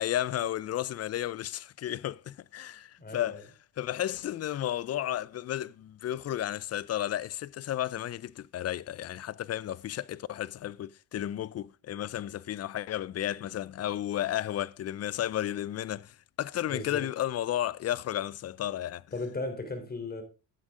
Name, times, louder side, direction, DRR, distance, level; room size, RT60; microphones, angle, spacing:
voice 1, 0.0-3.4 3.8-19.0, left 12 dB, 40° left, 0.5 m, -33 dB
voice 2, 3.0-3.4 16.7-17.1 19.1-20.2, left 2 dB, 25° left, 3.4 m, -36 dB
11.0 x 8.8 x 3.6 m
supercardioid pair, 80°, 40 cm